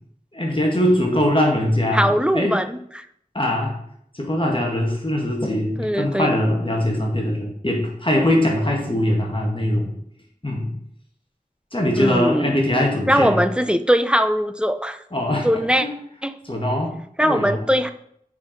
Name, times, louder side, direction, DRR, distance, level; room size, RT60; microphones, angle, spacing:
voice 1, 0.3-2.6 3.3-3.7 4.1-9.9 10.4-10.7 11.7-13.4 15.1-15.5 15.8-15.9 16.4-16.9 17.2-17.6, left 1 dB, 35° left, -1 dB, 1.8 m, -21 dB
voice 2, 1.9-3.1 5.8-6.3 12.0-12.6 13.1-15.0 15.4-15.9 16.2-16.3 17.2-17.9, equal, 5° right, 9 dB, 0.5 m, -20 dB
6.9 x 4.7 x 5.2 m, 0.70 s
wide cardioid pair, 50°, 15 cm